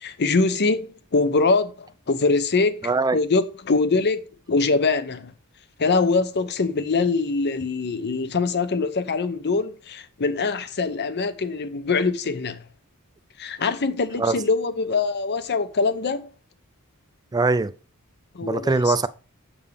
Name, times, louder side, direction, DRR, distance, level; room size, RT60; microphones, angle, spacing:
voice 1, 0.0-2.7 3.1-4.2 4.5-5.3 5.8-12.6 13.4-16.3 18.3-18.9, left 4 dB, 50° left, 0.7 m, -23 dB
voice 2, 2.8-3.2 14.2-14.4 17.3-17.7 18.4-19.1, right 3 dB, 15° right, 0.3 m, -22 dB
7.1 x 6.9 x 3.4 m
head